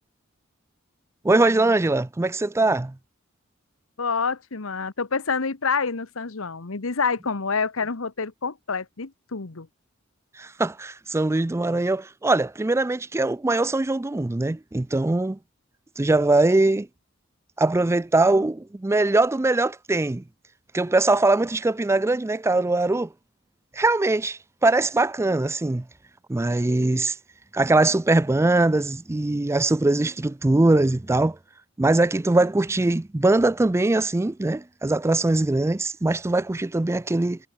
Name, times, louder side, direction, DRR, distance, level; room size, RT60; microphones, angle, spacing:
voice 1, 1.2-2.9 10.4-15.4 16.0-16.9 17.6-20.2 20.7-23.1 23.7-25.8 26.3-27.2 27.5-31.4 31.8-37.4, right 2 dB, 15° right, 0.4 m, -22 dB
voice 2, 4.0-9.7, left 5 dB, 80° left, 1.2 m, -27 dB
head